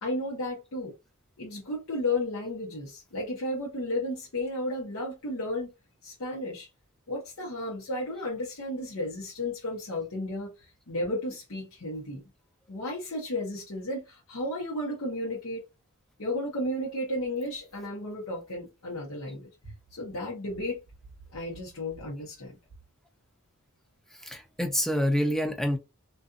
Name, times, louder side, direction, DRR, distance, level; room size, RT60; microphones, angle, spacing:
voice 1, 0.0-0.9 1.4-5.7 6.0-6.7 7.1-10.5 10.9-12.2 12.7-15.7 16.2-20.8 21.3-22.6, left 1 dB, 70° left, 0.9 m, -33 dB
voice 2, 24.2-25.8, equal, ahead, 0.3 m, -27 dB
2.5 x 2.4 x 2.5 m
head